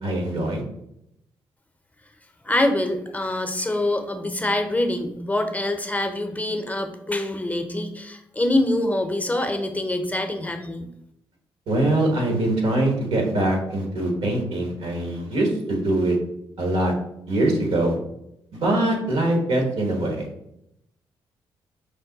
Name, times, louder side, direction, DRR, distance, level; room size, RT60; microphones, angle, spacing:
voice 1, 0.0-0.6 11.7-16.2 16.6-16.9 17.3-18.0 18.5-20.3, right 1 dB, 75° right, 1 dB, 1.3 m, -23 dB
voice 2, 2.4-10.9, left 1 dB, 15° left, 6 dB, 0.6 m, -25 dB
5.2 x 2.1 x 3.9 m, 0.80 s
supercardioid pair, 60°, 10 cm